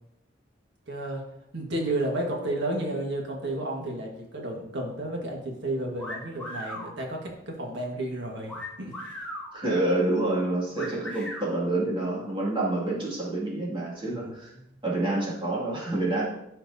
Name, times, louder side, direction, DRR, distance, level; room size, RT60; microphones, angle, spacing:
voice 1, 0.9-1.2 1.5-8.5 8.8-8.9 10.7-11.0 14.1-14.8, right 1 dB, 65° right, 0 dB, 1.6 m, -32 dB
sound 1, 6.0-6.9 8.5-9.5 10.8-11.5, left 1 dB, 10° left, 2.3 m, -37 dB
voice 2, 9.5-14.4 14.8-16.3, right 2 dB, 25° right, -5 dB, 2.3 m, -27 dB
12.5 x 4.5 x 2.7 m, 0.81 s
head